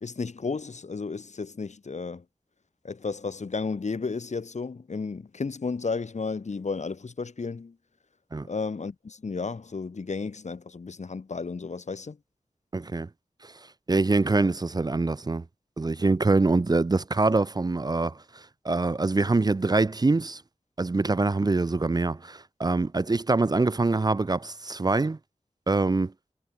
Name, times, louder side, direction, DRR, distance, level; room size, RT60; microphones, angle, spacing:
voice 1, 0.0-2.2 2.8-7.7 8.5-12.2, left 4 dB, 70° left, 1.4 m, -33 dB
voice 2, 12.7-13.1 13.4-13.5 13.9-15.4 15.8-20.4 20.8-25.2 25.7-26.1, right 3 dB, 35° right, 0.5 m, -24 dB
wide cardioid pair, 70°, 12 cm